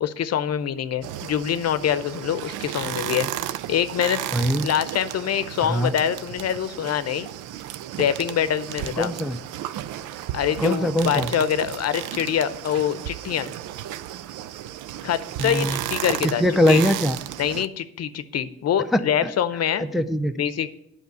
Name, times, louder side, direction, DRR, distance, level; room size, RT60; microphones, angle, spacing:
voice 1, 0.0-4.2 4.6-7.3 8.0-9.1 10.3-13.5 15.0-16.4 16.7-16.8 17.4-19.8 20.3-20.7, left 9 dB, 55° left, 13 dB, 0.7 m, -25 dB
sound 1, 1.0-17.7, right 12 dB, 80° right, 0.5 m, -33 dB
voice 2, 4.3-4.7 5.6-5.9 9.0-9.4 10.6-11.3 15.4-15.8 16.4-17.2 19.2-19.3 19.9-20.3, equal, ahead, 6 dB, 0.5 m, -21 dB
9.4 x 5.7 x 6.8 m, 0.80 s
cardioid pair, 90°, 30 cm